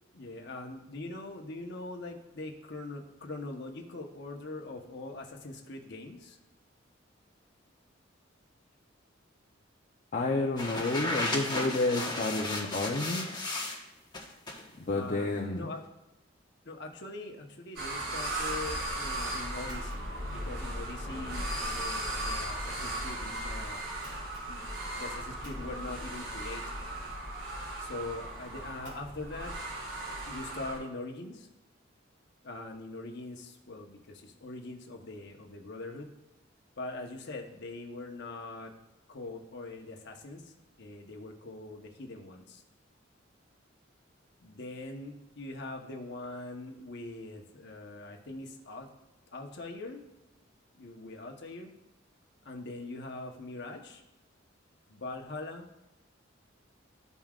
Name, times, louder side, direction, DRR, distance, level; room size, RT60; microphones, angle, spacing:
voice 1, 0.0-6.4 14.9-15.8 16.6-23.9 24.4-24.6 24.9-26.8 27.8-29.5 30.3-31.5 32.4-36.1 36.8-38.7 39.1-42.6 44.4-48.9 49.3-50.0 50.8-51.7 52.4-54.0 54.9-55.7, left 2 dB, 60° left, 2 dB, 1.0 m, -42 dB
voice 2, 10.1-13.4 14.8-15.7, left 2 dB, 40° left, -1 dB, 0.7 m, -30 dB
Unrolling And Rolling Map, 10.6-13.8 14.1-14.6, left 2 dB, 20° left, 1.3 m, -34 dB
sound 1, 17.8-30.8, right 1 dB, 70° right, 2.8 m, -36 dB
13.5 x 5.5 x 2.4 m, 0.96 s
head